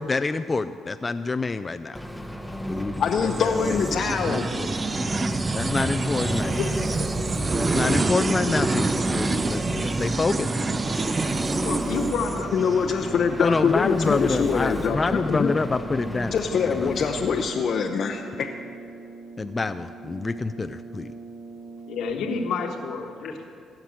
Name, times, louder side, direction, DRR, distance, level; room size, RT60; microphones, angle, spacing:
voice 1, 0.0-2.0 2.7-4.7 5.5-6.7 7.5-10.5 13.4-16.3 16.6-17.1 19.4-21.1, left 3 dB, 30° left, 10 dB, 0.4 m, -27 dB
Engine, 1.9-17.5, equal, ahead, 1.0 m, -34 dB
voice 2, 3.0-4.4 12.5-15.5 16.3-18.5, left 6 dB, 60° left, 3 dB, 0.7 m, -24 dB
sound 1, 3.1-12.8, right 3 dB, 30° right, 0.6 m, -27 dB
sound 2, 7.4-22.5, right 4 dB, 75° right, 0.8 m, -39 dB
voice 3, 11.6-13.0 21.9-23.5, left 4 dB, 80° left, 4 dB, 1.3 m, -30 dB
16.5 x 5.9 x 7.6 m, 2.4 s
supercardioid pair, 70°, 0 cm